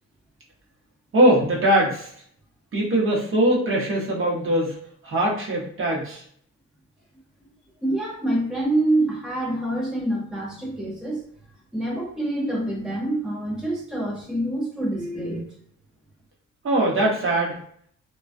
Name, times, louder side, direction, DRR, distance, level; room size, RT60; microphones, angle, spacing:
voice 1, 1.1-2.1 2.7-4.8 5.0-6.2 16.6-17.6, right 1 dB, 45° right, -3 dB, 1.0 m, -21 dB
voice 2, 7.8-11.2 11.7-15.5, right 1 dB, ahead, -3 dB, 0.6 m, -26 dB
2.3 x 2.2 x 2.5 m, 0.63 s
cardioid pair, 90°, 30 cm